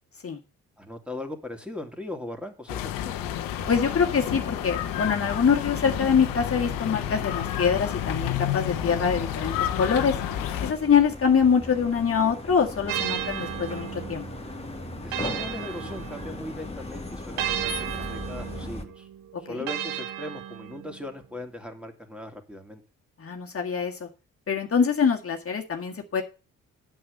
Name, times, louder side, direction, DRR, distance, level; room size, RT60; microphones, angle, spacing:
voice 1, 0.8-3.3 15.0-19.1 19.4-22.8, left 1 dB, 5° right, 5 dB, 2.9 m, -39 dB
sound 1, 2.7-10.7, left 11 dB, 80° left, 1.1 m, -30 dB
sound 2, 3.6-18.8, left 2 dB, 20° left, 2.3 m, -39 dB
voice 2, 3.7-10.2 10.6-14.3 19.5-19.7 23.2-24.1 24.5-26.2, left 6 dB, 40° left, 1 dB, 1.9 m, -24 dB
sound 3, 12.9-16.6 17.4-21.1, right 10 dB, 80° right, 1.5 m, -34 dB
8.6 x 7.4 x 6.7 m, 0.33 s
supercardioid pair, 55°, 34 cm